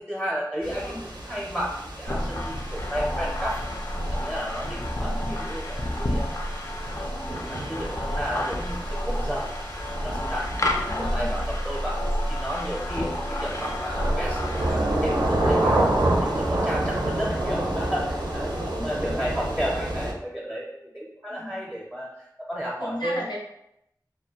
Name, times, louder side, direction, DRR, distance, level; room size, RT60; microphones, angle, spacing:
voice 1, 0.1-3.7 4.1-6.3 6.9-9.6 10.0-12.0 12.3-23.2, equal, 5° right, -4 dB, 0.5 m, -33 dB
sound 1, 0.6-20.1, right 1 dB, 80° right, 0.5 m, -29 dB
voice 2, 0.7-1.0 5.1-5.4 10.9-11.4 18.7-19.2 21.3-21.6 22.8-23.4, left 1 dB, 85° left, -2 dB, 0.6 m, -36 dB
sound 2, 2.1-14.7, equal, 45° left, 0.3 m, -30 dB
2.2 x 2.2 x 2.8 m, 0.81 s
wide cardioid pair, 45°, 7 cm